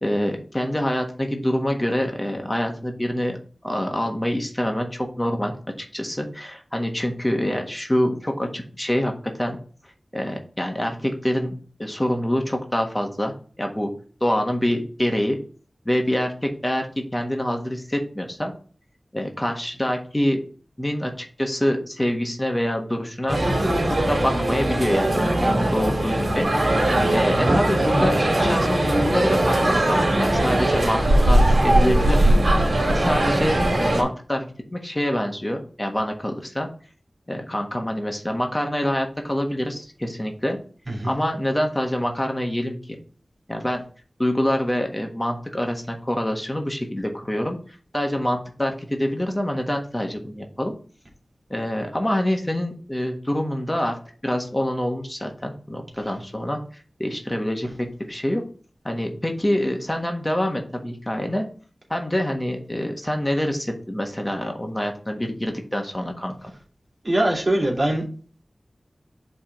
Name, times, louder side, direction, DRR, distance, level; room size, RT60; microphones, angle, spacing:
voice 1, 0.0-3.4 3.6-9.6 10.1-11.5 11.8-13.9 14.2-15.4 15.8-18.5 19.1-20.4 20.8-23.4 23.9-26.5 27.1-31.0 31.3-32.4 32.9-36.7 37.3-40.6 41.0-43.0 43.5-43.8 44.2-50.7 51.5-58.4 58.8-61.5 61.9-66.5, equal, 20° left, 3 dB, 1.4 m, -26 dB
sound 1, 23.3-34.0, right 1 dB, 70° right, 2.0 m, -20 dB
voice 2, 67.0-68.0, right 1 dB, 50° right, -1 dB, 2.5 m, -22 dB
5.7 x 3.6 x 5.8 m, 0.41 s
cardioid pair, 40°, 0 cm